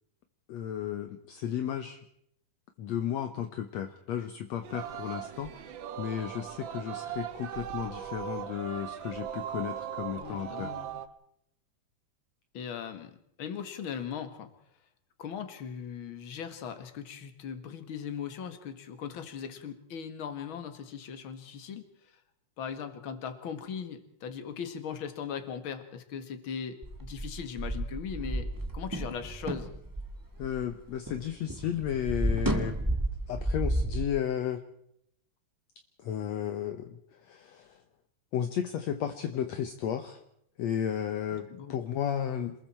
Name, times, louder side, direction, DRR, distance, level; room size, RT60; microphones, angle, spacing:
voice 1, 0.5-2.0 2.8-10.7 30.4-32.8 33.3-34.6 36.0-37.8 38.3-40.2 40.6-42.7, left 9 dB, 65° left, 8 dB, 2.0 m, -34 dB
Singing, 4.6-11.1, right 10 dB, 90° right, 1.0 m, -39 dB
voice 2, 10.2-11.0 12.5-13.1 13.4-14.5 15.2-22.1 22.6-28.5 28.7-29.7 41.5-41.8, left 7 dB, 45° left, 8 dB, 2.3 m, -39 dB
sound 1, 26.8-31.2 31.5-34.0, right 1 dB, 15° right, 0.7 m, -32 dB
27.0 x 21.0 x 4.5 m, 0.74 s
omnidirectional pair, 3.6 m